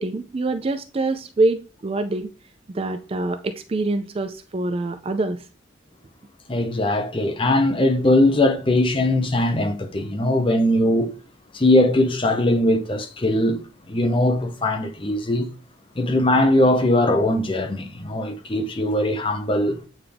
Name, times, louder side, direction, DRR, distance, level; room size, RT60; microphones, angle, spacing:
voice 1, 0.0-2.3 2.7-5.4, right 2 dB, 30° right, 0.3 m, -25 dB
voice 2, 6.5-11.1 11.5-13.6 13.9-15.5 16.0-19.8, left 1 dB, 25° left, 0.6 m, -20 dB
8.8 x 3.5 x 3.4 m
head